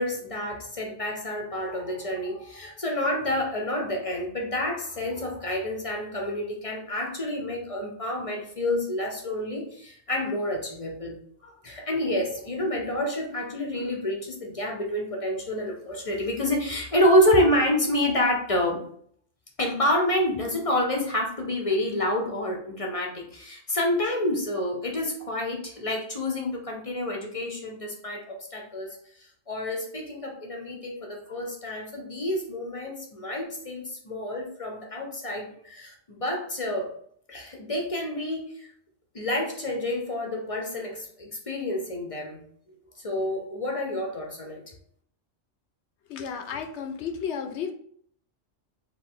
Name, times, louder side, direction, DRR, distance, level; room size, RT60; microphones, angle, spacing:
voice 1, 0.0-11.2 11.4-18.8 19.6-29.0 29.5-36.9 37.3-38.6 39.1-42.4 43.0-44.7, left 1 dB, 35° left, 0 dB, 0.6 m, -28 dB
voice 2, 46.1-47.7, left 7 dB, 65° left, 6 dB, 0.8 m, -33 dB
4.6 x 2.4 x 3.7 m, 0.62 s
omnidirectional pair, 1.3 m